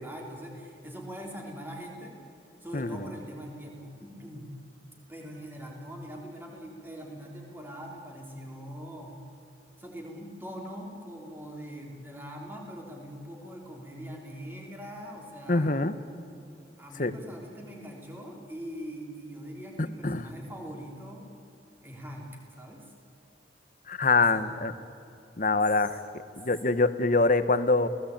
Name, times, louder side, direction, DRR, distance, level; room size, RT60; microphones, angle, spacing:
voice 1, 0.0-2.2 2.6-4.5 5.1-9.2 9.8-15.8 16.8-21.3 21.8-22.3 22.6-22.8 24.1-24.5, equal, 10° right, 0 dB, 3.8 m, -42 dB
voice 2, 2.7-3.1 15.5-15.9 17.0-17.1 20.0-20.3 23.9-24.7 25.4-26.0 26.4-27.9, left 3 dB, 45° left, 12 dB, 1.1 m, -24 dB
29.5 x 18.0 x 8.7 m, 2.8 s
head